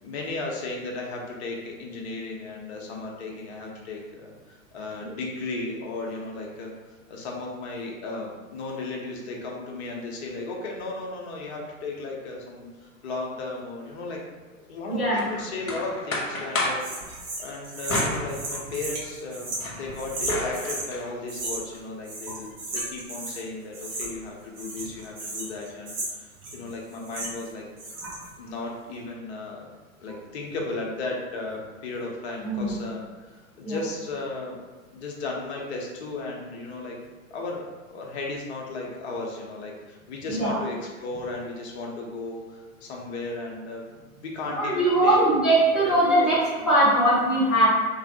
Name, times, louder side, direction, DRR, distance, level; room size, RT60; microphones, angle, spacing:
voice 1, 0.0-6.7 7.1-14.2 14.7-27.6 28.4-29.7 30.0-33.0 33.3-34.6 34.9-37.0 37.3-37.6 37.9-45.2 45.8-45.9, left 3 dB, 50° left, -1 dB, 0.8 m, -35 dB
voice 2, 14.9-15.2 32.4-32.8 33.6-33.8 40.3-40.6 44.5-46.4 46.7-47.7, right 1 dB, ahead, -11 dB, 0.4 m, -21 dB
sound 1, 15.2-16.9 17.9-18.9 19.4-21.1, left 1 dB, 90° left, 0.7 m, -31 dB
sound 2, 16.8-20.9 21.3-21.8 22.0-23.4 23.7-24.3 24.5-27.5 27.8-28.3, right 2 dB, 35° right, 1.2 m, -34 dB
3.0 x 2.4 x 2.7 m, 1.4 s
figure-of-eight pair, 100°, 41 cm